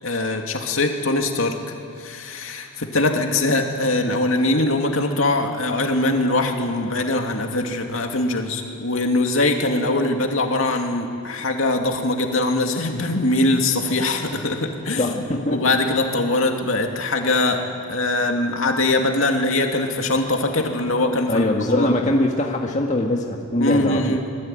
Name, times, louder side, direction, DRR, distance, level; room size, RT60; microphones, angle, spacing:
voice 1, 0.0-1.6 2.0-15.1 15.5-17.6 17.9-21.9 23.6-24.2, left 2 dB, 65° left, 3 dB, 2.6 m, -22 dB
voice 2, 15.0-15.6 21.3-24.2, left 1 dB, 35° left, 1 dB, 1.8 m, -22 dB
25.5 x 20.5 x 9.3 m, 2.7 s
head